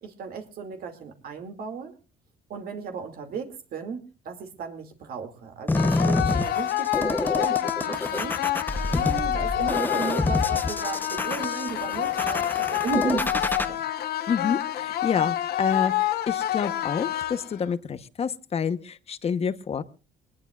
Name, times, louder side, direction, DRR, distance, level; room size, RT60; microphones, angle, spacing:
voice 1, 0.0-1.9 2.5-8.4 8.9-13.8, right 6 dB, 60° right, 5 dB, 2.5 m, -35 dB
sound 1, 5.7-17.7, left 13 dB, 65° left, 1.0 m, -28 dB
sound 2, 5.7-13.7, left 2 dB, 10° left, 0.8 m, -28 dB
voice 2, 14.3-19.8, left 6 dB, 35° left, 13 dB, 1.0 m, -28 dB
23.5 x 19.5 x 2.4 m, 0.33 s
cardioid pair, 110°, 17 cm